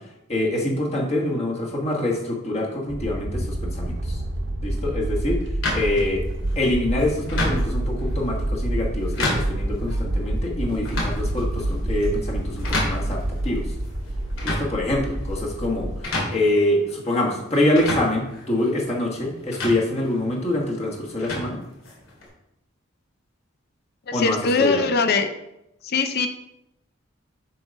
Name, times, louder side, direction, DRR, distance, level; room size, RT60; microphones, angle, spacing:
voice 1, 0.3-4.2 4.6-5.4 5.7-6.2 6.5-13.7 14.4-15.9 16.3-21.6 24.1-24.9, left 1 dB, 30° left, -2 dB, 1.4 m, -25 dB
sound 1, 2.9-16.0, right 1 dB, 60° right, 0.8 m, -28 dB
sound 2, 5.6-22.3, left 1 dB, 90° left, 2.4 m, -32 dB
voice 2, 24.1-25.3 25.8-26.3, left 4 dB, 50° left, 8 dB, 0.5 m, -21 dB
7.6 x 3.9 x 5.1 m, 0.85 s
head